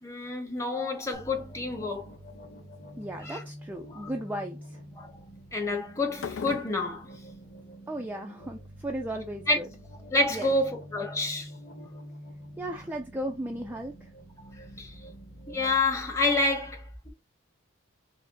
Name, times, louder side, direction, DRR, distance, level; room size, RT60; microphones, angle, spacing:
voice 1, 0.0-2.1 3.2-3.4 3.9-4.1 5.0-5.1 5.5-7.1 9.5-9.6 10.1-11.5 14.8-14.9 15.5-17.1, left 2 dB, 15° left, 1.0 m, -28 dB
sound 1, 0.7-1.0 1.4-1.9 2.4-2.9 3.3-3.5 6.1-7.0, left 6 dB, 75° left, 0.4 m, -39 dB
sound 2, 1.1-15.8, equal, 45° left, 1.9 m, -47 dB
voice 2, 3.0-4.8 7.9-9.7 10.3-10.5 12.6-14.1, right 1 dB, 10° right, 0.3 m, -36 dB
5.0 x 2.0 x 4.7 m
head